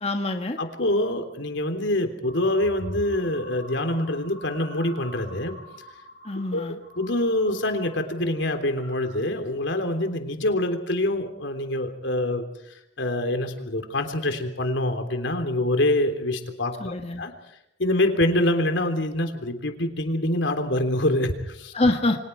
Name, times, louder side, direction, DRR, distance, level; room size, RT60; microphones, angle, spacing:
voice 1, 0.0-0.6 6.3-6.8 16.8-17.2 21.7-22.2, left 2 dB, 35° left, 4 dB, 1.7 m, -25 dB
voice 2, 0.6-5.6 6.5-6.6 7.0-12.5 13.0-16.9 17.2-17.3 17.8-21.7, left 1 dB, 85° left, 6 dB, 3.5 m, -25 dB
sound 1, 2.2-8.0 8.3-9.2 9.7-10.0, equal, 70° right, 7.9 m, -43 dB
30.0 x 25.0 x 4.7 m, 0.79 s
head